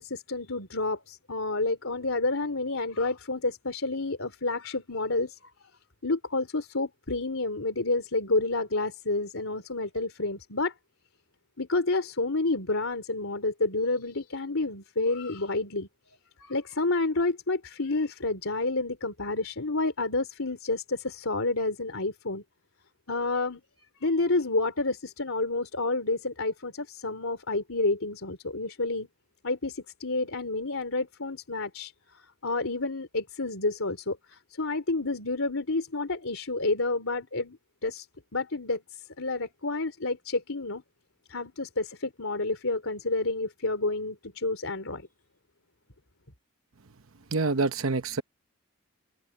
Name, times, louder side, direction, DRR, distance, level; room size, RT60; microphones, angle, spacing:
voice 1, 0.0-5.4 6.0-10.7 11.6-15.9 16.4-22.4 23.1-23.6 24.0-29.1 29.4-37.6 37.8-38.1 38.3-40.8 41.3-45.1, left 2 dB, 75° left, 3.2 m, -29 dB
voice 2, 47.3-48.2, right 3 dB, 75° right, 0.9 m, -26 dB
head